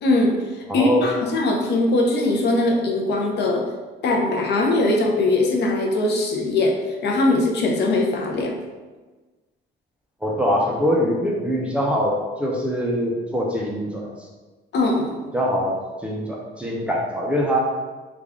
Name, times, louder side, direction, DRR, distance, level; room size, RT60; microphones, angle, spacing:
voice 1, 0.0-0.4 0.7-3.7 4.0-8.5 14.7-15.3, left 2 dB, 60° left, 1 dB, 0.6 m, -21 dB
voice 2, 0.7-1.1 10.2-14.1 15.3-15.8 16.0-17.6, equal, 5° right, -3 dB, 0.5 m, -23 dB
3.4 x 2.4 x 3.5 m, 1.3 s
cardioid pair, 140°, 20 cm